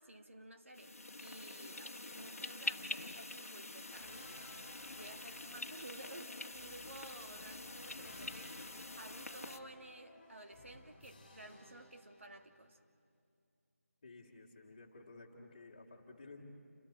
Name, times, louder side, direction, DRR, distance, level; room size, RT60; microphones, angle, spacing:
voice 1, 0.0-4.5 4.9-8.7 9.0-12.8, right 2 dB, 55° right, 5 dB, 1.7 m, -54 dB
sound 1, 0.7-9.6, left 2 dB, 70° left, 1.4 m, -46 dB
sound 2, 3.8-12.7, left 2 dB, 10° left, 3.5 m, -59 dB
voice 2, 14.0-16.4, left 3 dB, 25° left, -2 dB, 2.4 m, -54 dB
29.5 x 23.0 x 4.3 m, 2.5 s
figure-of-eight pair, 175°, 8 cm